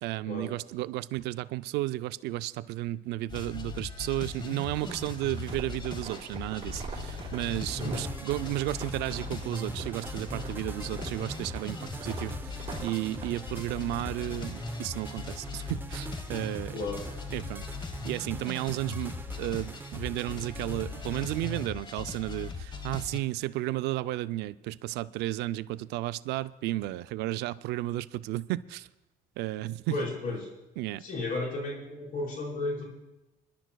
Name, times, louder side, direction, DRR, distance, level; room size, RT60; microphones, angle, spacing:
voice 1, 0.0-16.8 17.3-17.7 18.0-28.9 29.4-29.9 30.8-31.0, right 16 dB, 85° right, 15 dB, 0.4 m, -33 dB
sound 1, 3.3-23.2, left 4 dB, 25° left, 1.1 m, -39 dB
sound 2, 4.7-13.3, right 5 dB, 35° right, 4.6 m, -44 dB
sound 3, 7.4-21.7, right 3 dB, 10° right, 0.5 m, -43 dB
voice 2, 7.7-8.1 16.7-17.0 29.9-30.5 31.0-32.8, left 2 dB, 60° left, -2 dB, 4.6 m, -33 dB
27.5 x 11.0 x 2.3 m, 0.99 s
cardioid pair, 110°, 17 cm